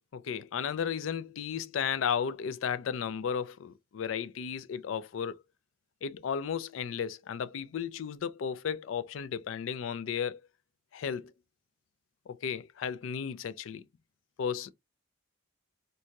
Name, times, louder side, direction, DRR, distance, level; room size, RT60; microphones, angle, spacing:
voice 1, 0.0-5.4 6.0-10.4 10.9-11.3 12.3-13.8 14.4-14.7, left 7 dB, 80° left, 0.4 m, -34 dB
2.6 x 2.3 x 2.8 m
head